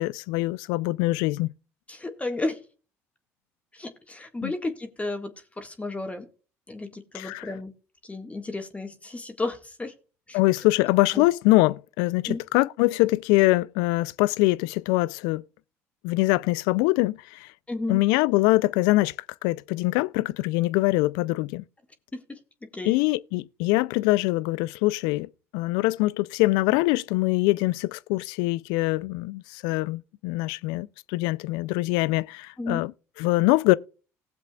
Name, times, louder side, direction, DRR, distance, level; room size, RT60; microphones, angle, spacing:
voice 1, 0.0-1.5 4.4-4.5 7.1-7.5 10.3-15.4 16.0-17.5 17.9-19.1 19.4-21.6 22.9-32.9 33.2-33.7, left 20 dB, 75° left, 0.4 m, -23 dB
voice 2, 1.9-2.6 3.7-6.3 6.7-7.7 8.0-9.9 10.3-10.4 11.1-11.2 12.2-12.4 17.7-18.0 22.1-22.9 32.6-32.8, left 2 dB, 20° left, 1.7 m, -33 dB
18.5 x 7.5 x 2.3 m
hypercardioid pair, 65°, 7 cm